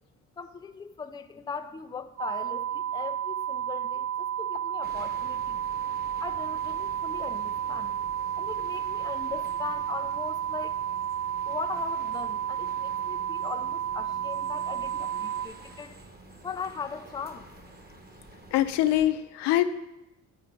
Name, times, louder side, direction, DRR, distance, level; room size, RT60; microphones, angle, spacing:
voice 1, 0.4-5.6 6.2-7.9 8.4-10.8 11.5-16.0 16.4-17.5, left 6 dB, 10° left, 7 dB, 0.4 m, -39 dB
sound 1, 2.2-15.5, right 10 dB, 40° right, 0.5 m, -31 dB
sound 2, 4.8-19.1, right 2 dB, 25° right, 1.1 m, -49 dB
voice 2, 18.5-19.6, left 13 dB, 80° left, 10 dB, 0.5 m, -23 dB
9.0 x 4.3 x 3.8 m, 0.94 s
supercardioid pair, 70°, 40 cm